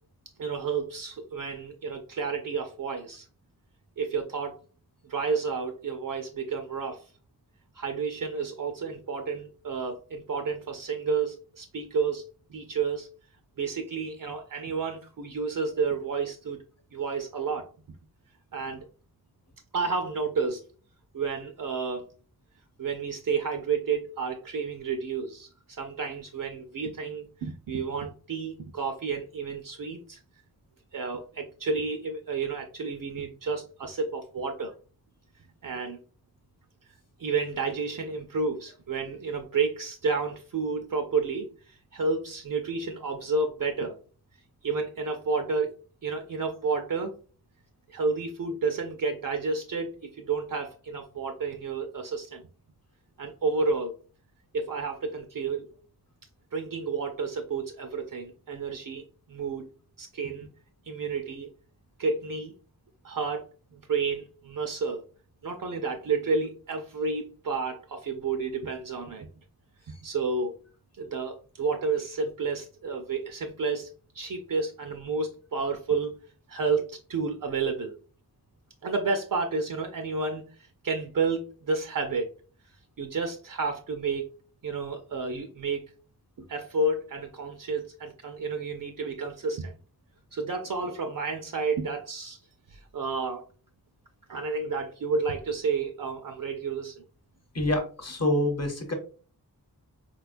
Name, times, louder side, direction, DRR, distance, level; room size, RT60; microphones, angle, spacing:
voice 1, 0.4-3.2 4.0-4.6 5.0-7.0 7.8-13.1 13.6-16.6 16.9-17.7 18.5-18.9 19.7-20.6 21.1-22.0 22.8-30.2 30.9-34.7 35.6-36.0 37.2-41.5 41.9-44.0 44.6-45.7 46.0-47.2 47.9-52.4 53.2-53.9 54.5-55.7 56.5-59.7 60.0-60.5 60.9-61.5 62.0-62.5 63.0-63.4 63.7-65.0 65.4-69.3 70.0-70.6 71.0-76.1 76.5-78.0 78.8-80.4 80.8-82.3 83.0-84.3 84.6-85.9 86.5-89.7 90.3-92.4 92.7-93.5 94.3-97.0, right 4 dB, 60° right, 5 dB, 0.5 m, -31 dB
voice 2, 97.5-98.9, left 1 dB, 40° left, 4 dB, 1.0 m, -26 dB
4.2 x 2.3 x 2.5 m, 0.38 s
wide cardioid pair, 50°, 37 cm